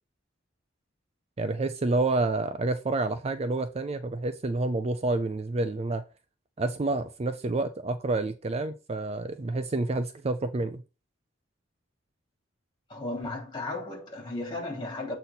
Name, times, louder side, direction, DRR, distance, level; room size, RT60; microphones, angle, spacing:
voice 1, 1.4-6.0 6.6-10.8, right 2 dB, 35° right, 0.5 m, -29 dB
voice 2, 12.9-15.1, left 2 dB, 25° left, 3.3 m, -35 dB
8.0 x 4.2 x 4.1 m
head